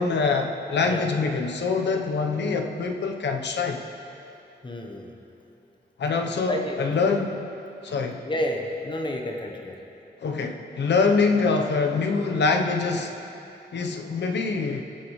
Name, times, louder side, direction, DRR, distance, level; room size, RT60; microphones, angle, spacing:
voice 1, 0.0-3.8 6.0-7.4 7.8-8.2 10.2-13.1 13.7-14.8, left 4 dB, 85° left, 4 dB, 0.9 m, -24 dB
voice 2, 4.6-5.1 6.5-6.8 8.3-9.7, left 1 dB, 25° left, 2 dB, 1.0 m, -30 dB
21.0 x 8.5 x 3.2 m, 2.8 s
wide cardioid pair, 145°, 18 cm